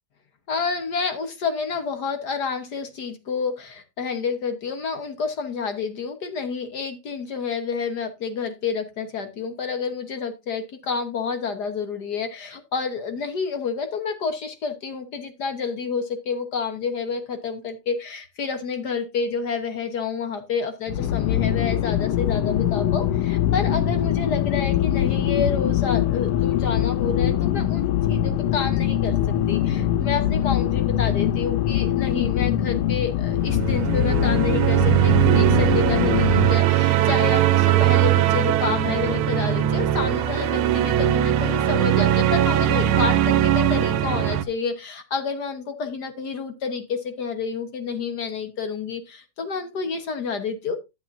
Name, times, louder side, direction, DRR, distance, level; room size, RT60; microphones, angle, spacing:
voice 1, 0.5-29.2 29.5-50.8, left 5 dB, 55° left, 7 dB, 1.6 m, -29 dB
sound 1, 20.9-36.6, left 11 dB, 80° left, 1.5 m, -23 dB
sound 2, 33.4-44.4, right 12 dB, 90° right, 1.6 m, -20 dB
11.5 x 8.4 x 2.6 m, 0.23 s
omnidirectional pair, 2.3 m